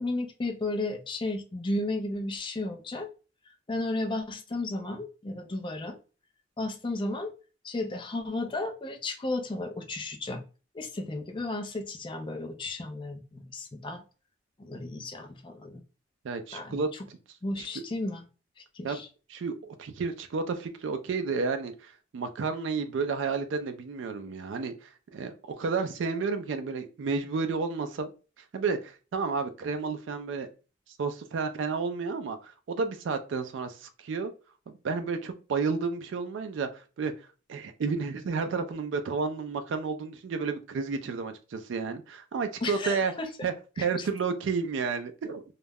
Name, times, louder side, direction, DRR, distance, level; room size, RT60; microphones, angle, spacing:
voice 1, 0.0-3.1 3.5-6.0 6.6-7.3 7.6-10.4 10.7-14.0 14.6-15.8 16.5-16.8 17.4-18.2 18.6-19.1 42.6-43.3, left 2 dB, 25° left, 0.4 m, -33 dB
voice 2, 16.2-17.2 17.6-17.7 18.8-19.0 19.3-28.1 28.4-30.5 30.9-34.3 34.7-43.1 43.4-45.4, right 4 dB, 75° right, 0.4 m, -31 dB
2.3 x 2.0 x 3.3 m
head